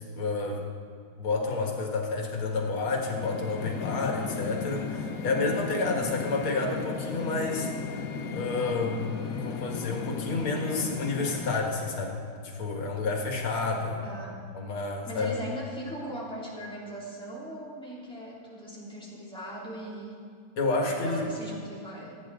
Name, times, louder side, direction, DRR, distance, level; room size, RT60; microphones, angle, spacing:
voice 1, 0.1-0.6 1.2-8.0 8.3-9.0 9.4-14.0 14.5-15.5 20.6-21.2, left 3 dB, 90° left, 0 dB, 2.6 m, -30 dB
sound 1, 2.5-11.6, left 5 dB, 55° left, 1.2 m, -35 dB
voice 2, 14.0-14.3 15.1-20.2 20.8-22.1, right 1 dB, ahead, -7 dB, 3.5 m, -39 dB
27.5 x 9.5 x 3.8 m, 2.3 s
omnidirectional pair, 2.2 m